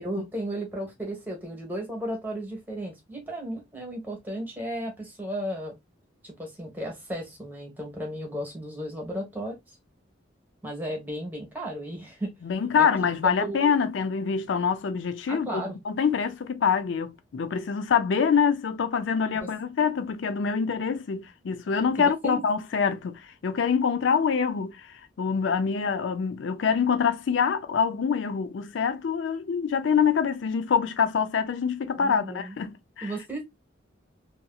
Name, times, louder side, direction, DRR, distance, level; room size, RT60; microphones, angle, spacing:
voice 1, 0.0-5.8 6.2-9.7 10.6-12.3 12.7-12.9 13.2-13.7 15.3-15.8 19.3-19.5 22.0-22.4 32.0-32.6 33.0-33.4, right 1 dB, 10° right, 1.1 m, -34 dB
voice 2, 12.4-33.1, left 6 dB, 70° left, 0.4 m, -25 dB
2.8 x 2.6 x 2.2 m
head